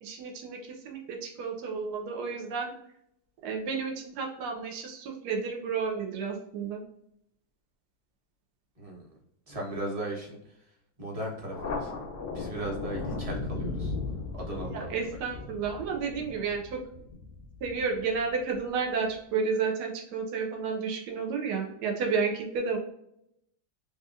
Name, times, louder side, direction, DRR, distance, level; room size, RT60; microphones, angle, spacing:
voice 1, 0.0-2.7 3.4-6.8 14.6-16.8 17.6-22.8, right 5 dB, 80° right, 0 dB, 1.2 m, -31 dB
voice 2, 9.5-10.4 11.0-11.9 12.3-13.9 14.3-14.9, right 1 dB, 30° right, -3 dB, 0.8 m, -36 dB
Thunder, 11.5-18.6, left 3 dB, 60° left, 0.6 m, -37 dB
3.5 x 2.7 x 2.4 m, 0.76 s
omnidirectional pair, 1.8 m